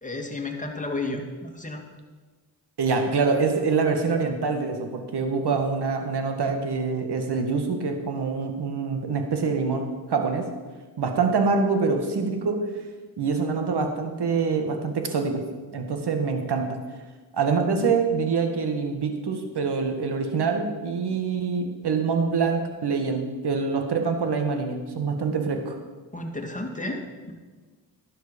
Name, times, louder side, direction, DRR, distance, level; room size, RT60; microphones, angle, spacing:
voice 1, 0.0-1.8 26.1-27.3, left 2 dB, 15° left, 2 dB, 2.2 m, -32 dB
voice 2, 2.8-10.5 11.0-12.6 13.2-15.4 15.7-16.8 17.3-25.8, right 4 dB, 55° right, 5 dB, 1.8 m, -25 dB
11.5 x 8.0 x 5.3 m, 1.4 s
hypercardioid pair, 45°, 48 cm